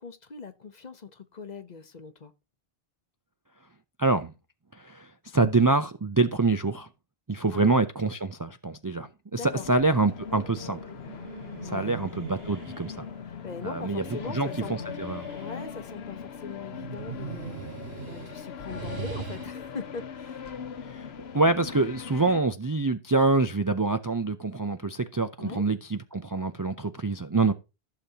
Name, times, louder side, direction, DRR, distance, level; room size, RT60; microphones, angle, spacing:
voice 1, 0.0-2.3 5.4-5.5 7.5-7.6 9.3-9.6 11.6-11.9 13.4-14.8 15.3-17.6 18.0-20.4 25.4-25.6, left 5 dB, 45° left, 0.9 m, -40 dB
voice 2, 4.0-4.3 4.7-6.9 7.3-10.8 11.6-13.0 13.6-15.3 20.9-27.5, right 3 dB, 30° right, 0.4 m, -26 dB
sound 1, 9.5-22.4, left 7 dB, 85° left, 1.1 m, -40 dB
sound 2, 10.6-13.0 13.8-15.8 16.6-19.5, right 7 dB, 75° right, 1.2 m, -41 dB
14.5 x 6.8 x 2.8 m
omnidirectional pair, 1.0 m